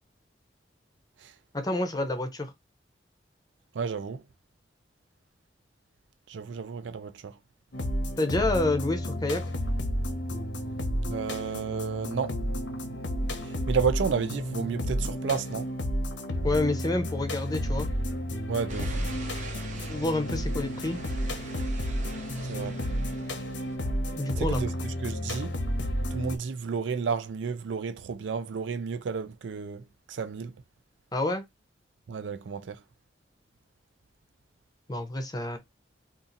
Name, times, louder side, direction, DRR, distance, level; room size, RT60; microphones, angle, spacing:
voice 1, 1.5-2.5 8.2-9.4 16.4-17.9 19.9-21.0 24.2-24.6 31.1-31.4 34.9-35.6, left 2 dB, 20° left, 0.6 m, -28 dB
voice 2, 3.7-4.2 6.3-7.4 11.1-12.4 13.4-15.7 18.5-19.0 19.8-19.9 22.5-22.8 24.4-25.6 26.1-30.5 32.1-32.8, right 5 dB, 75° right, 0.4 m, -32 dB
sound 1, 7.7-26.4, equal, 75° left, 0.9 m, -31 dB
sound 2, 18.7-23.8, right 1 dB, 40° right, 0.8 m, -42 dB
2.7 x 2.5 x 3.8 m
head